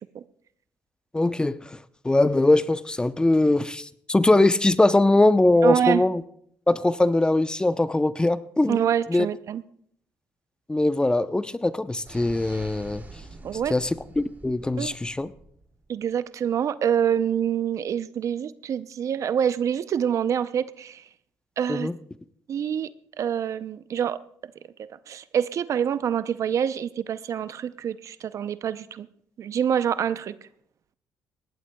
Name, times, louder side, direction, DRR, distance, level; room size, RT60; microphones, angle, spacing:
voice 1, 1.1-1.8 2.0-6.2 6.7-8.8 9.1-9.3 10.7-13.0 13.7-15.3 21.7-21.9, left 2 dB, 15° left, 13 dB, 0.7 m, -21 dB
voice 2, 5.6-6.0 8.7-9.6 13.4-13.7 14.8-14.9 15.9-21.0 21.6-21.9 22.5-22.9 23.2-24.2 24.8-29.1 29.4-30.4, right 8 dB, 55° right, 15 dB, 0.6 m, -26 dB
sound 1, 12.0-15.9, right 2 dB, 30° right, 2.5 m, -45 dB
19.5 x 17.0 x 2.3 m, 0.67 s
supercardioid pair, 70°, 6 cm